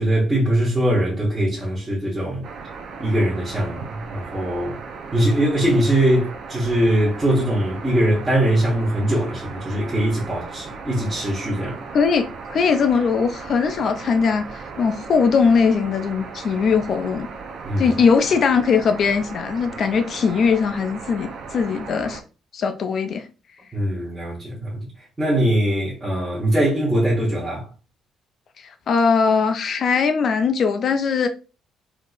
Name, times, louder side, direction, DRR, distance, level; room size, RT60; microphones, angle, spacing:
voice 1, 0.0-2.4 3.0-4.8 5.1-11.8 17.6-18.0 23.7-24.9 25.2-27.7, right 1 dB, 10° right, 1.0 m, -21 dB
sound 1, 2.4-22.2, right 5 dB, 50° right, 0.6 m, -37 dB
voice 2, 11.9-17.3 17.8-22.2 22.5-23.3 28.6-31.3, left 5 dB, 45° left, 0.3 m, -20 dB
3.6 x 2.7 x 2.4 m
cardioid pair, 155°, 0 cm